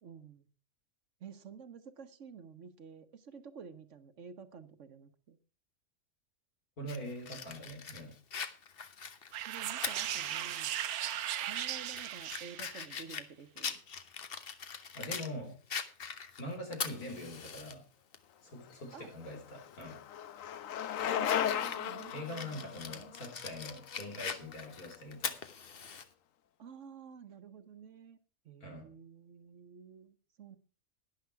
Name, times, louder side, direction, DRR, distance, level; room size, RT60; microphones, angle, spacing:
voice 1, 0.0-0.5 1.2-5.4 9.4-10.8 11.4-13.8 18.9-19.1 21.1-23.1 26.6-28.2 28.4-30.6, right 6 dB, 60° right, 11 dB, 1.2 m, -51 dB
voice 2, 6.8-8.1 14.9-15.5 16.4-17.8 18.4-20.0 22.1-25.3 28.6-28.9, left 1 dB, 90° left, 2 dB, 4.4 m, -43 dB
Fire, 6.9-10.8 11.1-11.2 11.8-15.3 15.7-17.7 18.1-18.2 19.7-20.0 20.4-26.0, left 6 dB, 45° left, 1.0 m, -42 dB
sound 1, 9.3-12.9, right 10 dB, 85° right, 1.2 m, -37 dB
Bicycle, 18.7-24.7, left 9 dB, 65° left, 1.1 m, -36 dB
12.0 x 10.5 x 4.6 m, 0.36 s
omnidirectional pair, 1.5 m